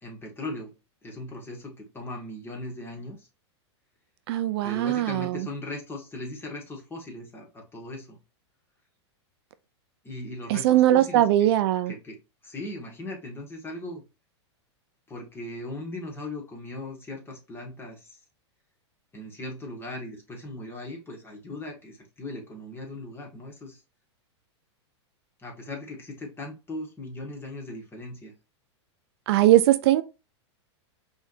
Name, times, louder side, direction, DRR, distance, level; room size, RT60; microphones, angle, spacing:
voice 1, 0.0-0.7 1.0-3.3 4.6-8.2 10.0-11.5 11.9-14.0 15.1-18.2 19.1-23.8 25.4-28.3, left 1 dB, 15° left, 2.1 m, -38 dB
voice 2, 4.3-5.5 10.5-11.9 29.3-30.0, right 13 dB, 60° right, 0.5 m, -20 dB
5.3 x 3.5 x 2.8 m
hypercardioid pair, 120°, 15 cm